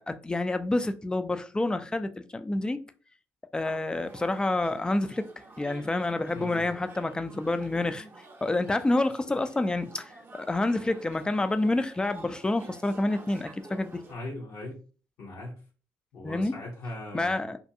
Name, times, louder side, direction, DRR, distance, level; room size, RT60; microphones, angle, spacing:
voice 1, 0.0-2.8 3.5-5.3 5.6-8.1 8.4-14.0 16.2-16.5 17.1-17.6, left 2 dB, 15° left, 0.3 m, -28 dB
sound 1, 3.6-14.1, right 2 dB, 35° right, 0.7 m, -50 dB
voice 2, 6.3-6.7 14.1-14.8 15.2-15.5 16.1-17.4, left 1 dB, 70° left, 0.9 m, -39 dB
2.5 x 2.2 x 2.6 m
supercardioid pair, 65°, 6 cm